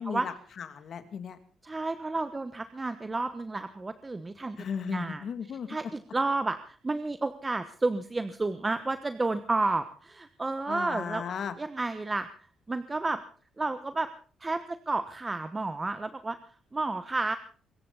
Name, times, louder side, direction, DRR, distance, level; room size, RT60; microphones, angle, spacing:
voice 1, 0.0-1.4 4.6-5.8 10.7-11.5, left 7 dB, 60° left, 9 dB, 2.3 m, -36 dB
voice 2, 1.6-5.2 5.7-11.2 11.6-12.3 12.7-13.2 13.6-14.1 14.4-16.4 16.7-17.4, right 3 dB, 20° right, 10 dB, 1.1 m, -31 dB
24.5 x 14.5 x 4.0 m, 0.42 s
cardioid pair, 90°, 0 cm